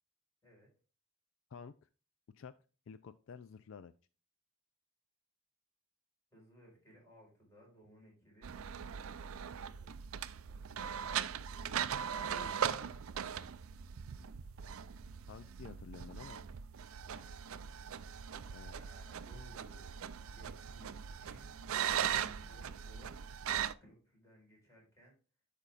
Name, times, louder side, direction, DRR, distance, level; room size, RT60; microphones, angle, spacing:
voice 1, 1.5-1.9 2.3-2.5 2.9-3.9 15.3-16.4 18.5-18.7, left 6 dB, 60° left, 12 dB, 0.3 m, -50 dB
voice 2, 6.3-8.6 9.4-10.0 12.0-13.0 17.1-17.3 18.6-23.1 23.5-25.2, equal, 15° left, -3 dB, 4.6 m, -60 dB
sound 1, 8.4-23.7, right 8 dB, 65° right, 0.4 m, -40 dB
12.5 x 5.2 x 2.4 m, 0.35 s
head